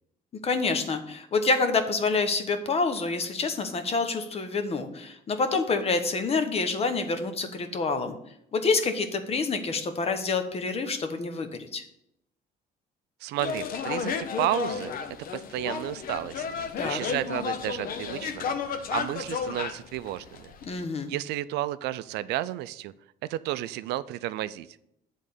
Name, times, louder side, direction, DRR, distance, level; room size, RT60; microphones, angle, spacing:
voice 1, 0.4-8.1 8.5-11.8 16.8-17.0 20.6-21.1, left 4 dB, 35° left, 8 dB, 1.0 m, -27 dB
voice 2, 13.2-14.9 15.3-16.4 16.8-18.6 18.9-20.5 21.1-22.9 23.3-24.7, right 14 dB, 80° right, 15 dB, 0.4 m, -32 dB
sound 1, 13.4-20.7, left 6 dB, 60° left, 0.8 m, -33 dB
8.4 x 3.7 x 6.7 m, 0.76 s
cardioid pair, 110°, 17 cm